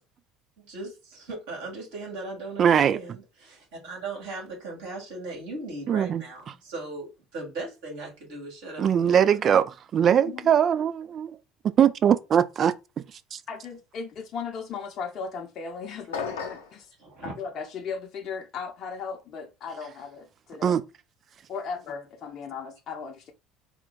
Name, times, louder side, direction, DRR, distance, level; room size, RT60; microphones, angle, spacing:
voice 1, 0.7-9.4 17.0-17.3, right 2 dB, 65° right, 2.5 m, -38 dB
voice 2, 2.6-3.0 5.9-6.5 8.8-11.4 11.8-12.7 20.6-20.8, right 8 dB, 45° right, 0.3 m, -21 dB
voice 3, 13.5-16.1 16.4-16.9 17.2-20.8 21.5-23.3, left 5 dB, 50° left, 0.7 m, -36 dB
sound 1, 16.1-16.8, left 5 dB, 80° left, 0.7 m, -32 dB
4.3 x 2.2 x 3.9 m
figure-of-eight pair, 65°, 0 cm